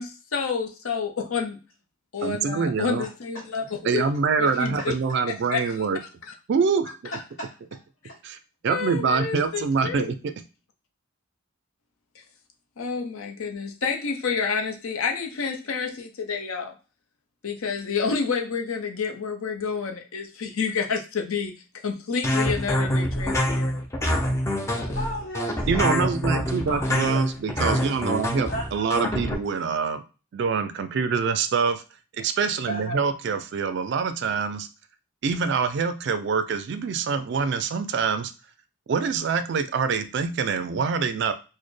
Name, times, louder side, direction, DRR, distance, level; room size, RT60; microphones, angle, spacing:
voice 1, 0.0-1.6 2.1-4.0 4.4-4.9 5.5-5.7 8.7-10.1 12.8-16.7 17.4-21.5 21.8-23.8 24.7-25.0, left 5 dB, 75° left, 4 dB, 0.6 m, -29 dB
voice 2, 2.2-3.0 3.8-6.0 6.5-6.9 8.2-8.4 8.6-10.3 25.7-30.0 30.3-31.8 32.2-34.7 35.2-38.3 38.9-41.3, right 5 dB, 55° right, 10 dB, 0.3 m, -25 dB
voice 3, 3.3-3.7 4.4-4.9 7.1-7.8 8.1-8.2 24.9-26.0 26.7-27.3 28.5-28.9 32.6-33.1, equal, 50° left, -7 dB, 1.2 m, -35 dB
sound 1, 22.2-29.3, left 1 dB, 15° left, 0.4 m, -25 dB
4.0 x 2.1 x 3.2 m, 0.34 s
head